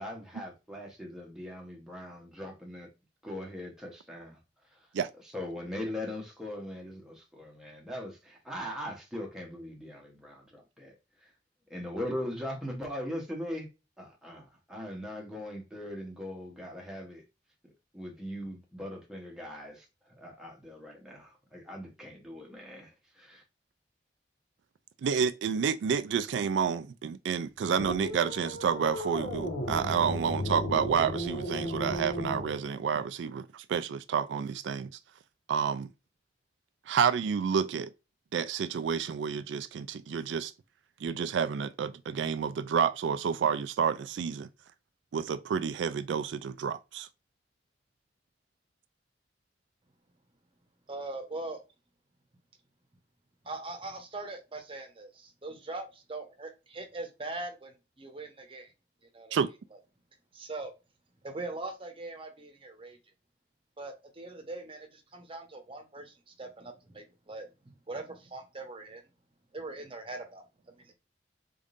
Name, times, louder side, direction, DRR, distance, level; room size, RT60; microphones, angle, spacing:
voice 1, 0.0-2.9 3.2-4.4 5.3-11.0 11.7-13.7 14.0-17.2 17.9-19.8 20.2-22.9 23.2-23.4, left 1 dB, 5° right, 1.0 m, -40 dB
voice 2, 25.0-34.9 35.5-35.9 36.9-37.9 38.3-40.5 41.0-44.5 45.1-47.1 59.3-59.5, right 6 dB, 90° right, 0.3 m, -29 dB
sound 1, 27.8-32.6, left 1 dB, 75° left, 1.2 m, -35 dB
voice 3, 50.9-51.6 53.4-58.7 59.1-59.4 60.3-60.7 61.2-63.0 63.8-67.5 67.9-69.0 69.5-70.9, right 2 dB, 30° right, 1.0 m, -41 dB
3.8 x 3.6 x 2.5 m
head